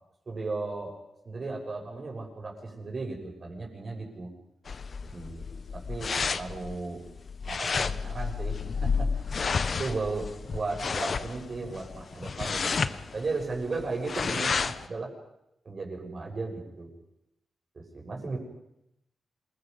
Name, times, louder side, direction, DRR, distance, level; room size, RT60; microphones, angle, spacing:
voice 1, 0.3-0.9 1.2-4.3 5.0-7.0 7.5-9.1 9.8-15.1 15.6-16.9 17.7-18.4, right 3 dB, 40° right, 1 dB, 6.7 m, -35 dB
sound 1, 4.7-14.9, left 5 dB, 45° left, 1.0 m, -31 dB
27.5 x 21.5 x 5.6 m, 0.83 s
wide cardioid pair, 115°, 0 cm